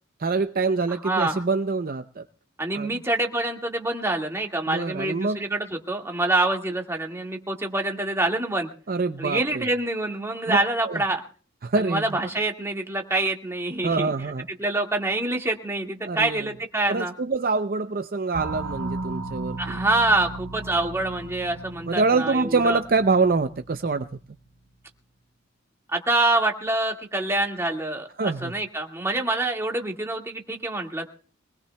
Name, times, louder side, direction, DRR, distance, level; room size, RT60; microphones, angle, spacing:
voice 1, 0.2-2.2 2.7-3.0 4.7-5.4 8.9-9.7 10.5-10.6 10.8-11.0 11.6-12.2 13.8-14.4 16.1-16.5 16.9-19.8 21.9-24.1 28.2-28.5, right 4 dB, 50° right, 8 dB, 0.6 m, -25 dB
voice 2, 1.0-1.4 2.6-8.7 9.2-11.2 11.8-14.1 14.6-17.1 19.6-22.8 25.9-31.1, right 2 dB, 15° right, 1 dB, 1.9 m, -26 dB
sound 1, 18.3-24.7, right 2 dB, 80° right, 1.0 m, -36 dB
24.5 x 20.0 x 2.3 m, 0.40 s
head